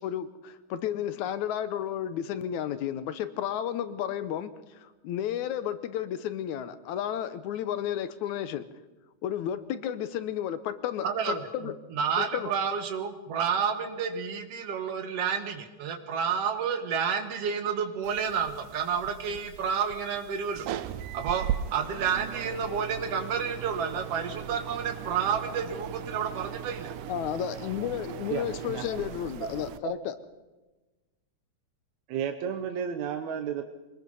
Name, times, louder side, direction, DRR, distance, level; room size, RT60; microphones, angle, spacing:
voice 1, 0.0-8.6 9.2-11.8 12.2-12.5 27.1-30.2, left 10 dB, 75° left, 12 dB, 2.2 m, -32 dB
voice 2, 11.0-20.7 21.1-26.9, right 6 dB, 55° right, 6 dB, 2.4 m, -30 dB
sound 1, 18.0-29.8, right 10 dB, 90° right, 2.3 m, -38 dB
voice 3, 28.3-28.8 29.8-29.9 32.1-33.6, right 8 dB, 75° right, 6 dB, 2.2 m, -32 dB
24.5 x 20.0 x 5.4 m, 1.2 s
omnidirectional pair, 3.4 m